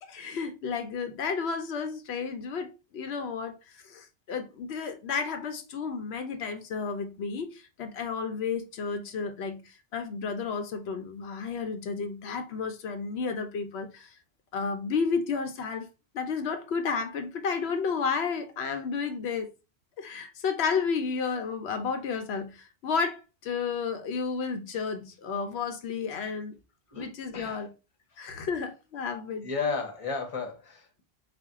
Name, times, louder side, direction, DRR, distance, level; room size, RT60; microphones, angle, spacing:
voice 1, 0.0-2.7 2.9-14.2 14.5-15.9 16.1-19.5 20.0-26.5 27.0-27.7 28.2-29.5, left 5 dB, 80° left, 0.9 m, -32 dB
voice 2, 26.9-27.6 29.4-31.0, left 4 dB, 35° left, 0.9 m, -33 dB
4.2 x 2.2 x 3.5 m
omnidirectional pair, 1.1 m